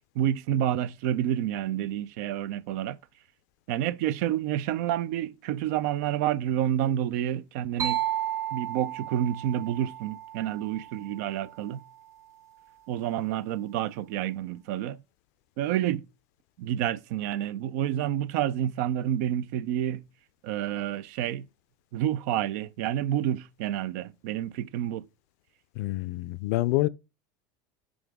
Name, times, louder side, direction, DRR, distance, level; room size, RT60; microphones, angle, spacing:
voice 1, 0.1-3.0 3.7-8.0 8.5-11.8 12.9-15.0 15.6-16.0 16.6-20.0 20.4-21.5 21.9-25.0, right 11 dB, 70° right, 0.6 m, -29 dB
sound 1, 7.8-11.5, right 12 dB, 35° right, 1.1 m, -33 dB
voice 2, 25.8-26.9, left 18 dB, 70° left, 0.5 m, -27 dB
9.4 x 5.1 x 3.6 m
supercardioid pair, 130°, 9 cm